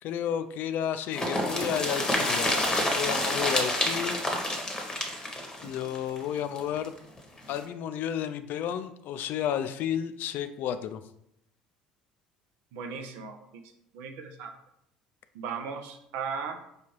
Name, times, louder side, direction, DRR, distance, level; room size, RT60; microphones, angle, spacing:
voice 1, 0.0-4.2 5.6-6.9 7.5-11.0, left 9 dB, 55° left, 10 dB, 0.3 m, -32 dB
sound 1, 1.1-6.9 7.2-7.3 7.5-7.6, left 1 dB, 20° left, 1.0 m, -28 dB
voice 2, 12.7-13.6 13.9-14.5 15.3-16.6, right 5 dB, 65° right, 6 dB, 0.5 m, -37 dB
4.9 x 2.3 x 3.0 m, 0.76 s
hypercardioid pair, 60°, 4 cm